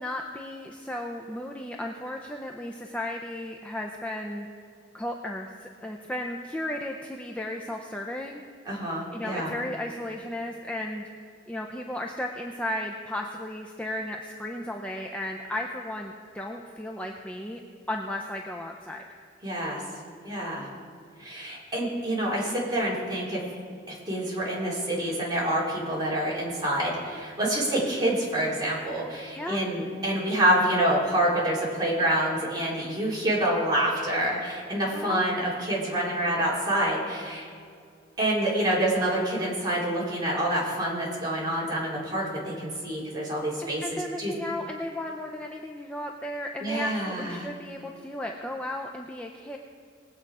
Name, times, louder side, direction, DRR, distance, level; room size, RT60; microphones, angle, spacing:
voice 1, 0.0-4.5 4.9-8.4 9.1-11.1 11.5-17.6 17.9-19.0 29.3-29.7 34.9-35.3 42.5-42.6 43.6-49.6, left 1 dB, 5° left, 1 dB, 0.5 m, -35 dB
voice 2, 8.6-9.5 19.4-19.8 20.2-20.7 21.2-23.4 23.9-37.5 38.2-44.3 46.6-47.4, right 1 dB, 20° right, -5 dB, 3.3 m, -27 dB
20.0 x 7.9 x 4.8 m, 2.3 s
head